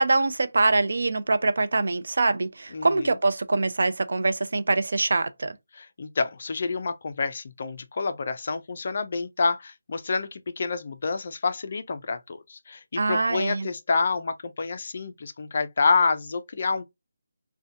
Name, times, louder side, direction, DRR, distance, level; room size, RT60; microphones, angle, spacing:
voice 1, 0.0-5.6 13.0-13.7, right 3 dB, 55° right, 0.4 m, -24 dB
voice 2, 2.7-3.1 5.8-16.8, left 4 dB, 35° left, 0.3 m, -28 dB
2.6 x 2.1 x 2.5 m
figure-of-eight pair, 175°, 0 cm